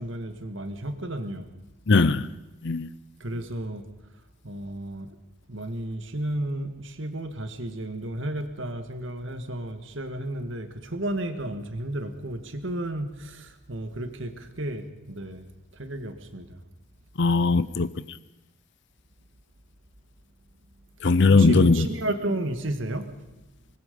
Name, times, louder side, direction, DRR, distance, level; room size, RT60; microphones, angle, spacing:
voice 1, 0.0-1.5 3.2-3.8 4.4-5.2 5.5-15.5 15.7-16.6 21.3-23.1, right 1 dB, 60° right, 1.8 m, -32 dB
voice 2, 1.9-2.3 2.6-2.9 17.2-17.9 21.0-21.9, left 3 dB, 55° left, 0.7 m, -19 dB
24.5 x 20.0 x 5.3 m
head